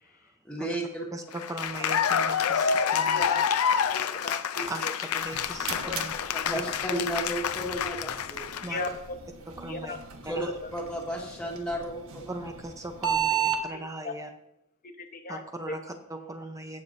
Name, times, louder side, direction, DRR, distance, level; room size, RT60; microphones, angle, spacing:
voice 1, 0.4-1.0 5.8-5.9 6.3-8.5 10.2-12.5, right 1 dB, 5° left, -4 dB, 1.8 m, -33 dB
voice 2, 1.1-3.4 4.6-6.1 6.5-6.6 8.6-9.0 9.5-10.0 10.3-10.5 12.3-14.3 15.3-16.8, right 1 dB, 15° right, 5 dB, 0.7 m, -39 dB
Cheering / Applause, 1.3-8.9, left 7 dB, 90° left, 0.5 m, -28 dB
voice 3, 3.1-3.4 3.9-4.9 8.7-8.9 9.7-10.0 14.0-14.1 15.0-15.4 15.7-15.8, left 3 dB, 40° left, 6 dB, 1.0 m, -35 dB
sound 1, 5.1-13.6, right 8 dB, 70° right, 1.2 m, -35 dB
17.0 x 7.0 x 2.7 m, 0.84 s
head